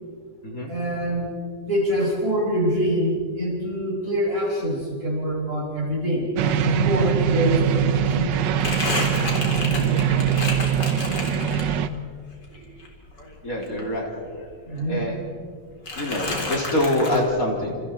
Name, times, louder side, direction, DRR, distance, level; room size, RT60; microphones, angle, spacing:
voice 1, 0.7-1.3 1.6-8.4 12.6-12.7 14.6-15.1, equal, 40° right, -4 dB, 8.0 m, -25 dB
sound 1, 6.4-11.9, right 8 dB, 75° right, 1.6 m, -22 dB
Crumpling crinkling, 7.2-7.3 7.6-12.0 12.4-14.5 14.8-15.5 15.9-17.2, left 2 dB, 65° left, 4.2 m, -31 dB
voice 2, 13.4-14.1 14.9-15.2 16.0-17.8, left 1 dB, 50° left, -1 dB, 3.9 m, -25 dB
29.5 x 28.5 x 4.4 m, 2.1 s
omnidirectional pair, 2.0 m